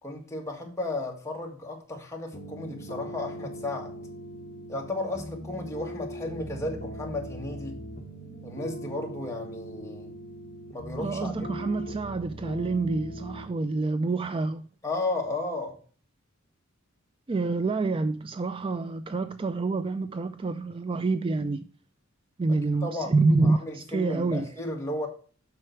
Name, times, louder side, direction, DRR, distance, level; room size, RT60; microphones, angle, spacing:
voice 1, 0.0-3.9 4.7-7.8 8.4-10.1 10.7-11.4 14.8-15.8 22.8-23.1 23.4-25.1, left 2 dB, 15° left, 1.8 m, -34 dB
sound 1, 2.3-13.5, equal, 40° left, 1.4 m, -40 dB
voice 2, 11.0-14.6 17.3-21.7 22.4-24.6, right 3 dB, 25° right, 0.3 m, -27 dB
7.7 x 5.8 x 4.5 m
head